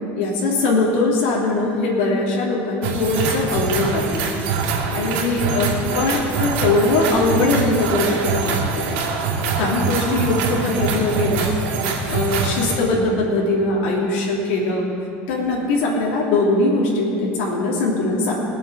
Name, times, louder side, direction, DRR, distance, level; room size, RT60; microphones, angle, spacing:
voice 1, 0.1-4.2 4.9-8.9 9.6-11.6 12.1-14.9 15.3-18.3, left 2 dB, 80° left, -3 dB, 3.0 m, -21 dB
sound 1, 2.8-12.8, right 5 dB, 80° right, 2.4 m, -24 dB
20.0 x 7.1 x 7.4 m, 2.6 s
cardioid pair, 155°, 6 cm